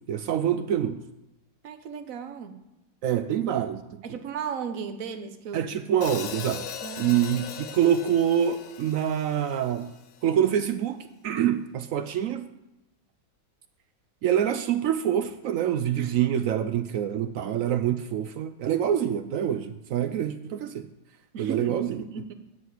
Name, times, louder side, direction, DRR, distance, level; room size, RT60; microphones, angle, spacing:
voice 1, 0.1-1.0 3.0-3.8 5.5-6.7 7.0-9.9 10.2-11.0 11.2-12.5 14.2-20.9 21.4-22.0, right 9 dB, 75° right, 10 dB, 0.7 m, -26 dB
voice 2, 1.6-2.6 4.0-5.7 6.8-7.3 15.9-16.1 21.3-22.3, right 6 dB, 55° right, 7 dB, 1.2 m, -36 dB
Hi-hat, 6.0-10.2, left 9 dB, 65° left, 1.0 m, -39 dB
10.0 x 4.7 x 8.0 m, 0.94 s
omnidirectional pair, 1.9 m